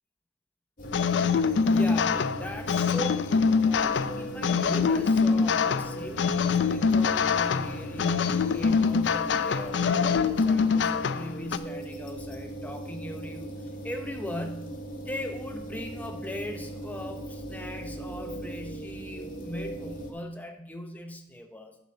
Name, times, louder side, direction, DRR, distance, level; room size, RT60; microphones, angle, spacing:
sound 1, 0.8-20.1, right 1 dB, 50° left, 1.5 m, -39 dB
sound 2, 0.9-11.6, left 5 dB, 85° left, 0.4 m, -24 dB
voice 1, 1.5-21.8, left 1 dB, 10° left, 4 dB, 0.8 m, -39 dB
9.6 x 4.2 x 6.5 m, 0.80 s
head